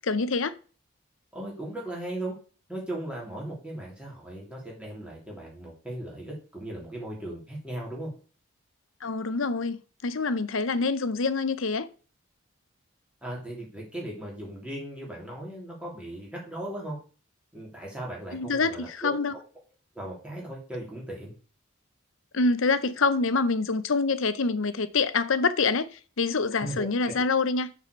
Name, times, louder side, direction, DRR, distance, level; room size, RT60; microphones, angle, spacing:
voice 1, 0.0-0.5 9.0-9.8 10.0-11.9 18.3-19.3 22.3-27.7, left 4 dB, 70° left, 0.7 m, -26 dB
voice 2, 1.3-2.3 2.7-8.1 13.2-17.0 17.5-19.2 19.9-21.3 26.6-27.1, right 1 dB, 5° right, 3.2 m, -37 dB
6.7 x 4.8 x 6.6 m
head